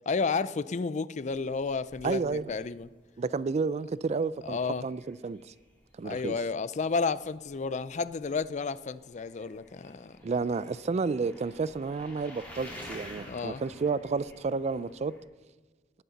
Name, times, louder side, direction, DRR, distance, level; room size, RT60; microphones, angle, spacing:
voice 1, 0.1-2.9 4.4-4.9 6.0-10.2 13.3-13.6, left 4 dB, 45° left, 0.4 m, -31 dB
sound 1, 1.2-15.2, left 1 dB, 10° left, 4.1 m, -51 dB
voice 2, 2.0-2.5 3.2-5.5 6.0-6.4 10.2-15.1, right 4 dB, 40° right, 0.3 m, -31 dB
19.0 x 9.4 x 4.1 m
head